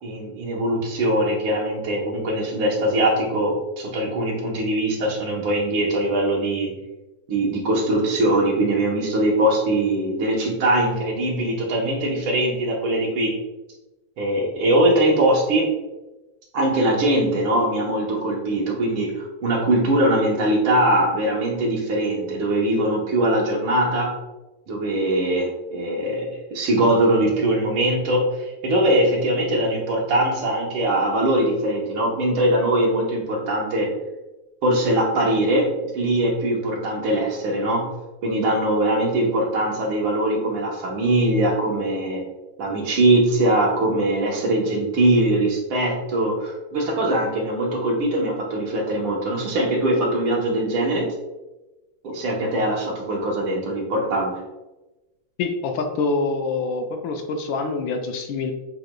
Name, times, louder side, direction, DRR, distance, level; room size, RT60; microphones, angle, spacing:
voice 1, 0.0-6.7 7.3-13.3 14.2-15.7 16.5-24.1 24.7-33.9 34.6-37.9 38.2-42.2 42.6-51.1 52.0-54.3, right 1 dB, 80° right, -2 dB, 1.9 m, -21 dB
voice 2, 55.4-58.5, left 3 dB, 75° left, 4 dB, 1.2 m, -25 dB
7.5 x 3.0 x 2.2 m, 1.0 s
omnidirectional pair, 2.3 m